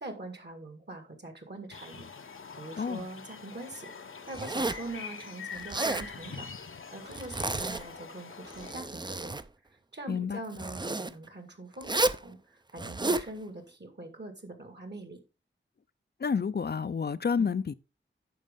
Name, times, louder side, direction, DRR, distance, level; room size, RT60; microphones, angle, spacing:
voice 1, 0.0-2.1 2.6-3.9 4.3-6.5 6.9-9.3 9.9-12.4 12.7-15.2 17.4-17.5, right 2 dB, 55° right, 2.0 m, -43 dB
sound 1, 1.7-8.7, left 5 dB, 75° left, 0.8 m, -44 dB
Zipper (clothing), 4.3-4.9 5.6-6.1 7.1-8.0 8.5-9.5 10.5-11.1 11.8-12.2 12.8-13.3, right 2 dB, 20° right, 0.4 m, -31 dB
voice 2, 10.1-10.4 16.2-17.7, left 6 dB, 50° left, 0.4 m, -29 dB
9.3 x 6.4 x 3.7 m
wide cardioid pair, 70°, 21 cm